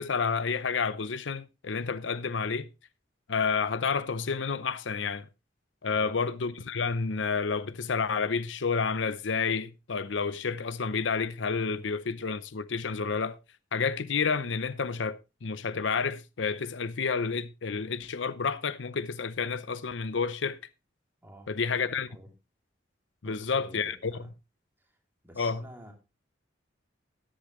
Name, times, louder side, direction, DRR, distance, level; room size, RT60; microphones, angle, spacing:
voice 1, 0.0-2.7 3.3-5.3 5.8-13.4 13.7-20.6 21.5-22.1 23.2-24.1 25.4-25.6, left 5 dB, 75° left, 0.7 m, -30 dB
voice 2, 23.2-24.3 24.8-25.0 25.2-25.9, right 1 dB, 10° right, 3.1 m, -50 dB
13.5 x 10.5 x 3.1 m
head